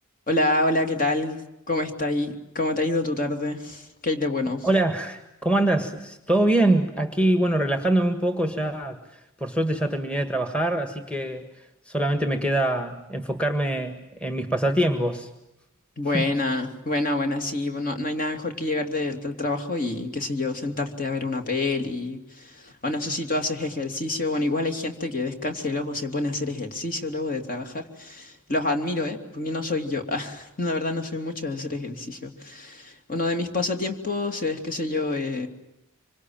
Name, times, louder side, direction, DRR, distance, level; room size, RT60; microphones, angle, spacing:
voice 1, 0.3-1.4 1.7-4.7 16.0-35.5, left 2 dB, 40° left, 5 dB, 2.9 m, -27 dB
voice 2, 4.6-9.0 9.4-11.5 11.9-15.3 16.1-16.3, right 1 dB, 5° left, 7 dB, 1.8 m, -24 dB
26.0 x 25.0 x 8.9 m, 0.87 s
head